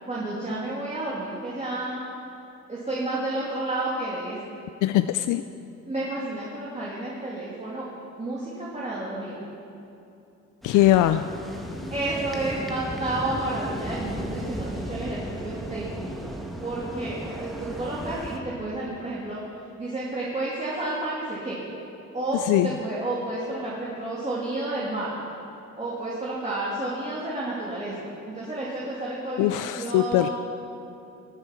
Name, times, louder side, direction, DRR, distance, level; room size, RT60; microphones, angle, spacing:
voice 1, 0.1-2.0 2.7-4.4 5.9-7.8 8.2-9.3 10.7-10.8 11.9-16.4 16.6-19.4 19.8-21.6 22.1-25.2 25.8-28.0 28.3-30.3, right 2 dB, 20° right, -7 dB, 2.6 m, -31 dB
voice 2, 4.8-5.4 10.6-11.3 22.4-22.7 29.4-30.3, left 14 dB, 85° left, 10 dB, 0.5 m, -21 dB
sound 1, 10.6-18.4, equal, ahead, 1.7 m, -35 dB
19.5 x 7.9 x 5.8 m, 2.7 s
cardioid pair, 90°, 30 cm